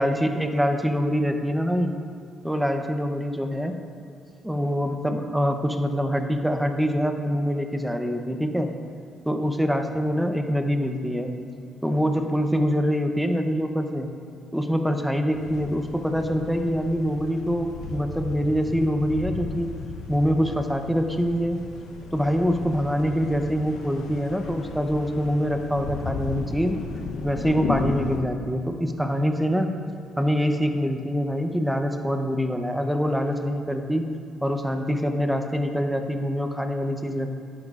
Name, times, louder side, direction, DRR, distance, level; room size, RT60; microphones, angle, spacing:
voice 1, 0.0-1.9 2.4-3.7 4.4-8.7 9.3-11.3 11.8-14.1 14.5-19.7 20.1-21.6 22.1-26.8 27.2-29.7 30.2-34.1 34.4-37.3, equal, 5° right, 5 dB, 0.7 m, -25 dB
sound 1, 15.3-28.2, left 4 dB, 80° left, 0.8 m, -35 dB
10.5 x 10.0 x 2.5 m, 2.3 s
cardioid pair, 90°, 0 cm